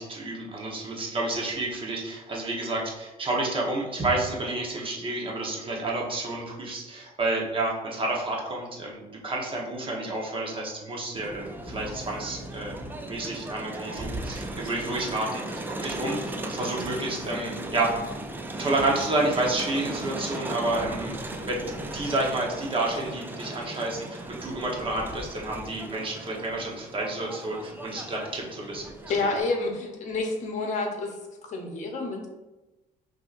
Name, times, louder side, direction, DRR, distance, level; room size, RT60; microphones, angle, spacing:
voice 1, 0.0-12.7 13.1-17.9 18.6-21.2 21.5-28.9 29.2-29.3, right 2 dB, 30° right, -2 dB, 1.0 m, -30 dB
Crowd, 11.2-29.4, right 2 dB, 10° right, 0.4 m, -37 dB
sound 1, 11.7-13.1 14.8-15.4 16.8-17.2 18.8-20.3 20.8-22.1, equal, 15° left, 0.8 m, -44 dB
voice 2, 29.1-31.2 31.5-32.3, left 3 dB, 45° left, 2 dB, 0.9 m, -29 dB
5.6 x 2.8 x 2.5 m, 1.1 s
cardioid pair, 110°, 17 cm